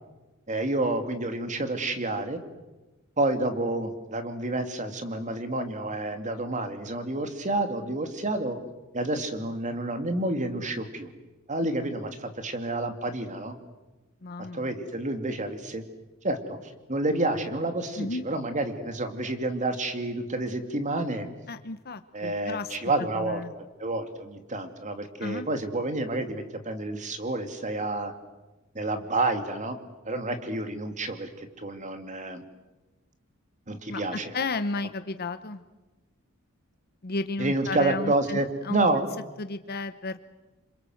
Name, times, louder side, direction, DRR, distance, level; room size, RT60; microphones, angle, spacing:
voice 1, 0.5-2.4 3.2-8.6 8.9-11.1 11.5-13.6 14.5-15.8 16.2-21.3 22.1-28.1 28.7-29.8 30.0-32.4 33.7-34.3 37.4-39.1, right 2 dB, 35° right, 7 dB, 2.6 m, -29 dB
voice 2, 14.2-14.7 18.0-18.2 21.5-22.8 23.1-23.5 25.2-25.5 33.9-35.6 37.0-38.4 38.6-38.9 39.4-40.2, left 3 dB, 45° left, 11 dB, 0.9 m, -33 dB
28.0 x 26.0 x 7.9 m, 1.1 s
head